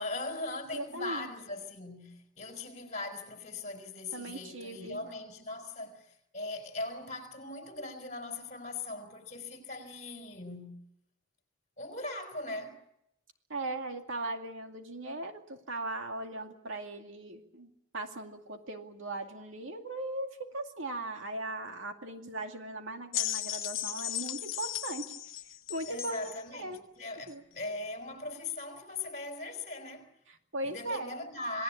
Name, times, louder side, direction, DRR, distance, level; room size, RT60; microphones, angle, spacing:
voice 1, 0.0-10.8 11.8-12.8 25.9-30.1 30.6-31.6, left 2 dB, 35° left, 4.4 m, -40 dB
voice 2, 0.7-1.3 4.1-5.1 13.5-25.1 25.7-26.9 27.3-27.4 30.3-31.2, right 2 dB, 70° right, 2.3 m, -39 dB
sound 1, 23.1-26.4 27.3-27.4, left 13 dB, 70° left, 0.9 m, -36 dB
27.5 x 18.5 x 8.5 m
head